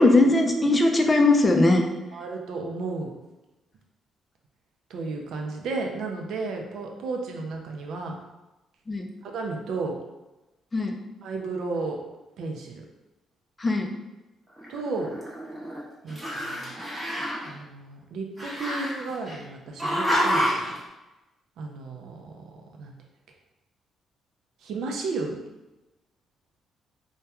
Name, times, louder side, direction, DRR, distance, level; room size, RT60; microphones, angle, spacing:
voice 1, 0.0-1.8 8.9-9.1 10.7-11.0 13.6-13.9, left 2 dB, 25° left, 4 dB, 0.4 m, -19 dB
voice 2, 2.1-3.1 4.9-8.2 9.2-10.0 11.2-12.0 12.4-12.8 14.7-15.1 16.0-16.7 17.4-20.7 21.6-22.9 24.6-25.4, right 3 dB, 75° right, 2 dB, 0.4 m, -33 dB
Growling, 14.6-15.8 16.1-17.5 18.4-19.4 19.8-20.7, equal, 20° right, 0.8 m, -28 dB
2.8 x 2.2 x 2.2 m, 1.0 s
cardioid pair, 90°, 0 cm